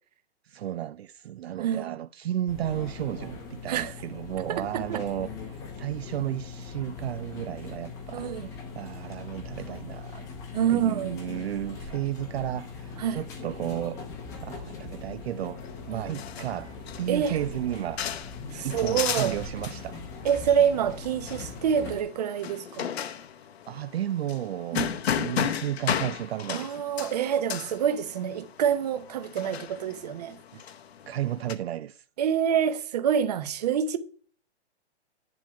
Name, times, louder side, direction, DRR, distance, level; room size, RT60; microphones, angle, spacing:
voice 1, 0.4-10.2 10.7-14.0 14.4-15.6 15.9-18.1 18.6-20.0 23.7-24.9 25.2-26.8 30.5-30.6 31.1-32.0, right 12 dB, 65° right, 0.5 m, -33 dB
voice 2, 1.6-1.9 3.7-3.9 4.5-5.0 8.1-8.5 10.5-11.2 13.0-13.2 15.9-16.2 17.1-17.4 18.5-19.4 20.2-22.9 24.7-25.0 26.5-30.4 32.2-34.0, right 8 dB, 35° right, 0.8 m, -27 dB
sound 1, 2.5-22.0, left 4 dB, 10° left, 0.7 m, -41 dB
sound 2, 15.6-31.5, left 9 dB, 65° left, 1.0 m, -35 dB
10.5 x 3.6 x 7.3 m
hypercardioid pair, 170°, 34 cm